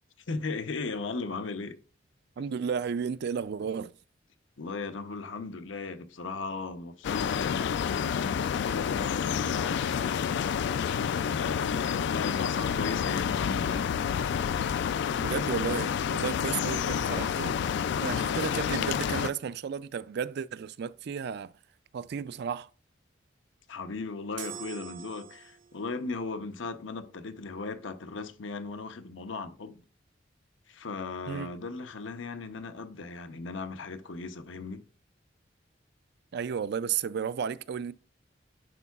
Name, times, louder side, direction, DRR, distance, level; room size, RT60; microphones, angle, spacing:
voice 1, 0.3-1.8 4.6-10.5 11.2-13.8 23.7-29.8 30.7-34.8, left 4 dB, 85° left, 0.8 m, -37 dB
voice 2, 2.4-3.9 15.2-17.6 18.0-21.5 21.9-22.7 31.3-31.5 36.3-37.9, right 7 dB, 60° right, 0.4 m, -33 dB
sound 1, 7.0-19.3, left 7 dB, 65° left, 0.3 m, -29 dB
sound 2, 24.4-25.9, right 9 dB, 80° right, 1.6 m, -43 dB
11.0 x 4.6 x 2.3 m
head